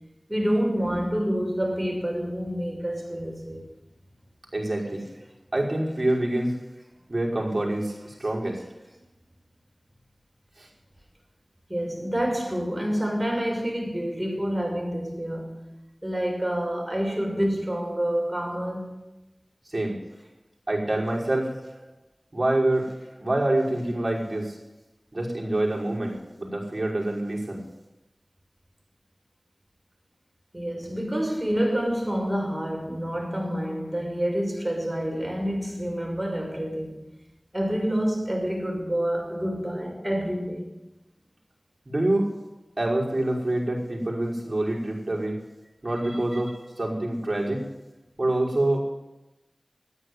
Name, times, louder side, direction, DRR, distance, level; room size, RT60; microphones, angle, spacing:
voice 1, 0.3-3.6 11.7-15.6 16.0-18.9 30.5-37.0 37.5-40.7 46.0-46.2, equal, 20° right, 5.9 m, -28 dB
voice 2, 4.5-5.0 5.5-6.6 7.1-8.6 10.6-10.7 19.7-20.0 20.7-21.5 22.3-22.9 23.2-24.6 25.1-27.6 41.9-42.3 42.8-45.4 45.8-47.6 48.2-48.8, right 1 dB, 40° right, 5.5 m, -26 dB
13.5 x 10.0 x 9.7 m
wide cardioid pair, 45°, 0 cm